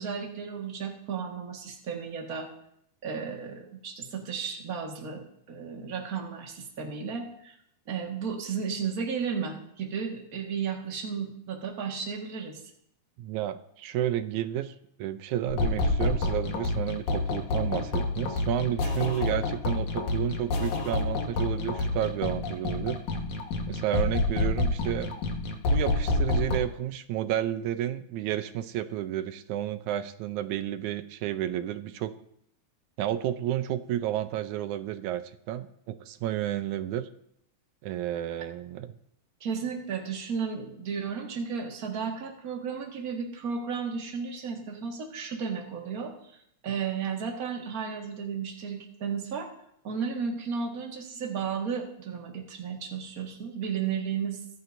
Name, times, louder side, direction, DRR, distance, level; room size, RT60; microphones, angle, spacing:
voice 1, 0.0-2.5 3.0-7.5 7.9-12.6 39.4-46.4 46.6-49.5 49.8-54.4, right 6 dB, 35° right, 1 dB, 1.9 m, -34 dB
voice 2, 13.2-14.7 15.0-23.0 23.7-25.1 25.7-32.1 33.0-35.2 35.5-37.1 37.8-38.9, right 12 dB, 85° right, 10 dB, 2.1 m, -31 dB
sound 1, 15.5-26.6, left 2 dB, 80° left, 2.9 m, -28 dB
24.0 x 11.0 x 2.7 m, 0.73 s
omnidirectional pair, 3.3 m